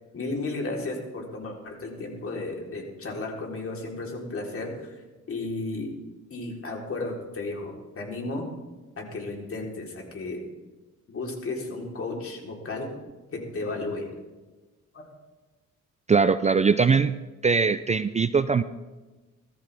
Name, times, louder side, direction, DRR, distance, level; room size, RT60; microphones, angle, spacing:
voice 1, 0.1-4.9 5.3-5.9 6.3-8.5 9.0-10.5 11.1-12.9 13.3-14.1 14.9-15.1, left 2 dB, 45° left, 0 dB, 3.8 m, -33 dB
voice 2, 16.1-17.1 17.4-18.6, right 5 dB, 25° right, 13 dB, 0.4 m, -21 dB
20.5 x 13.5 x 3.5 m, 1.2 s
cardioid pair, 90°, 30 cm